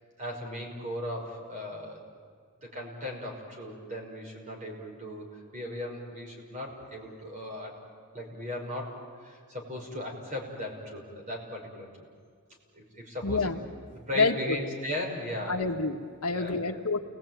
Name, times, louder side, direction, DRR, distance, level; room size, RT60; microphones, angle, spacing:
voice 1, 0.2-2.0 2.6-7.8 8.1-9.0 9.2-11.9 12.7-13.5 14.1-15.7 16.3-16.8, left 1 dB, 35° right, 0 dB, 5.7 m, -37 dB
voice 2, 13.2-13.6 14.1-14.6 15.5-17.0, left 3 dB, 85° left, 5 dB, 1.5 m, -28 dB
29.5 x 20.5 x 9.2 m, 2.1 s
head